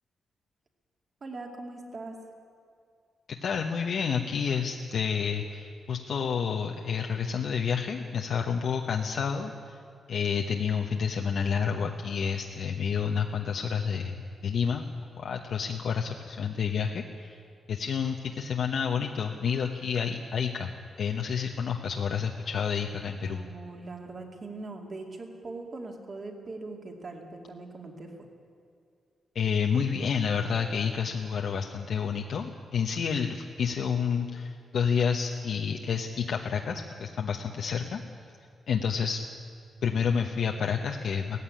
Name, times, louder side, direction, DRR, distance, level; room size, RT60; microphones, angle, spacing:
voice 1, 1.2-2.2 22.8-28.1, right 3 dB, 35° right, 3 dB, 2.5 m, -41 dB
voice 2, 3.4-9.8 10.1-14.8 15.2-17.4 17.7-20.7 21.0-23.4 29.3-38.0 38.7-39.2 39.8-41.4, left 6 dB, 65° left, 2 dB, 1.0 m, -29 dB
17.0 x 15.0 x 10.0 m, 2.3 s
wide cardioid pair, 140°, 0 cm